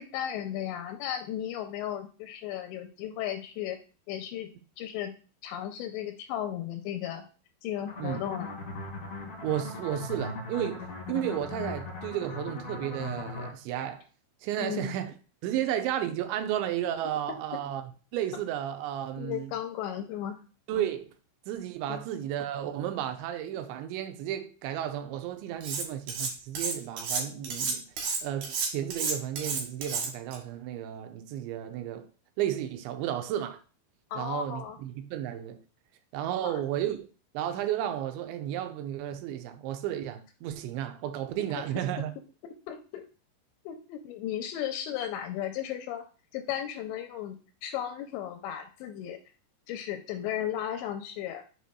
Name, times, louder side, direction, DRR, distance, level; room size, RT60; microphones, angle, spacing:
voice 1, 0.0-3.8 4.1-4.5 4.8-5.1 5.4-7.3 7.6-8.6 14.6-15.0 19.2-20.4 21.9-22.0 34.1-34.8 36.4-36.6 42.7-43.1 43.7-46.0 46.3-49.2 49.7-51.4, left 10 dB, 85° left, 2.7 m, -35 dB
sound 1, 7.9-13.5, left 3 dB, 40° left, 1.1 m, -39 dB
voice 2, 9.4-14.0 14.4-15.1 15.4-19.5 20.7-21.1 21.5-27.8 28.2-32.1 32.4-33.6 34.1-35.6 36.1-37.1 37.3-42.1, right 11 dB, 80° right, 2.9 m, -33 dB
Cutlery silverware, 25.6-26.3 26.5-30.4, right 5 dB, 65° right, 3.3 m, -31 dB
7.4 x 5.6 x 2.3 m
omnidirectional pair, 5.3 m